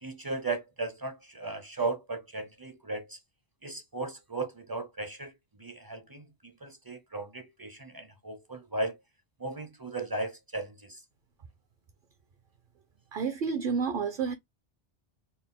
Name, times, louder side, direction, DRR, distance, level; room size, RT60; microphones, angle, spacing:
voice 1, 0.0-3.2 3.6-5.3 5.6-6.3 6.6-9.0 9.4-11.0, right 2 dB, 30° right, 0.5 m, -36 dB
voice 2, 13.1-14.3, right 5 dB, 60° right, 0.7 m, -30 dB
4.2 x 2.1 x 3.6 m
omnidirectional pair, 1.1 m